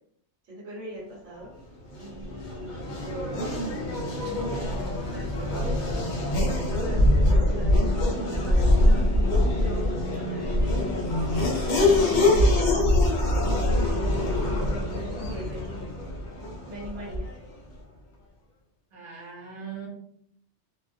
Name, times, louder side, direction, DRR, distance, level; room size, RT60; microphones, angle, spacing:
voice 1, 0.5-1.5 1.9-3.5 4.2-6.1 6.9-10.3 11.6-13.0 13.9-15.6 16.7-17.3, right 1 dB, 85° right, -4 dB, 1.2 m, -41 dB
Race car auto racing / Accelerating revving vroom, 1.9-17.5, left 1 dB, 50° left, 0.6 m, -24 dB
voice 2, 9.9-10.6 18.9-19.9, right 6 dB, 50° right, -3 dB, 0.9 m, -42 dB
2.3 x 2.1 x 2.6 m, 0.70 s
omnidirectional pair, 1.2 m